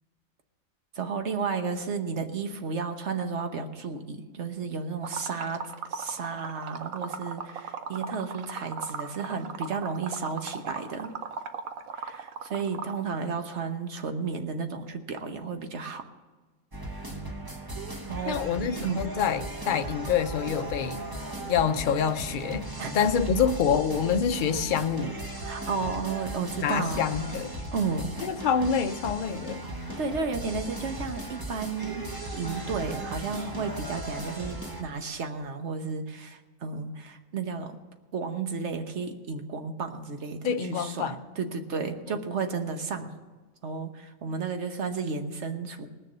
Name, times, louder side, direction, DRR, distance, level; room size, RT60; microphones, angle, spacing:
voice 1, 0.9-5.6 5.9-11.1 11.9-16.0 18.0-18.6 18.8-19.1 22.8-23.0 25.4-27.0 27.7-28.1 30.0-37.8 38.1-43.1 43.6-45.9, right 5 dB, 60° right, 6 dB, 1.3 m, -33 dB
Liquid, 5.0-13.0, right 6 dB, 80° right, 1.2 m, -37 dB
sound 1, 16.7-34.8, right 1 dB, 15° right, 1.1 m, -37 dB
voice 2, 18.3-21.0 21.5-22.7 22.9-25.2 26.6-27.5 28.2-29.6 40.4-41.2 42.1-42.2, left 7 dB, 50° left, 9 dB, 0.7 m, -26 dB
19.5 x 6.7 x 6.7 m, 1.3 s
omnidirectional pair, 1.4 m